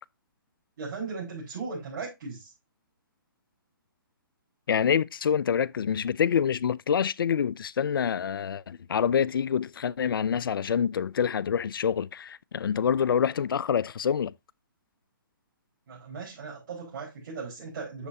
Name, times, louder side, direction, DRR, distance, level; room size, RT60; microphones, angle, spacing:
voice 1, 0.8-2.5 15.9-18.1, right 4 dB, 55° right, 4.4 m, -37 dB
voice 2, 4.7-14.3, left 7 dB, 75° left, 0.4 m, -26 dB
7.9 x 6.7 x 2.7 m
hypercardioid pair, 140°, 12 cm